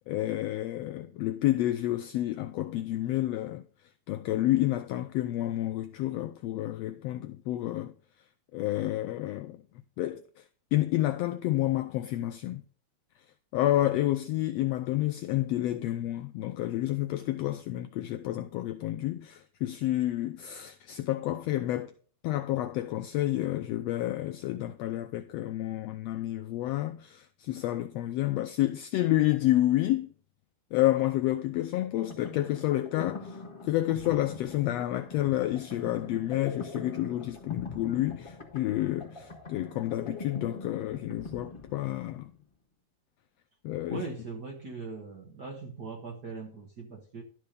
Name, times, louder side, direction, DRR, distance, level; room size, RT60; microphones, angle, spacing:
voice 1, 0.1-3.6 4.1-7.9 8.5-9.6 10.0-10.2 10.7-12.6 13.5-21.9 22.2-30.1 30.7-33.4 33.6-42.3 43.6-44.0, left 15 dB, 85° left, 1.4 m, -29 dB
sound 1, 31.8-42.3, left 3 dB, 20° left, 0.8 m, -43 dB
voice 2, 43.9-47.2, right 4 dB, 50° right, 1.3 m, -40 dB
12.0 x 4.6 x 5.1 m
omnidirectional pair, 3.4 m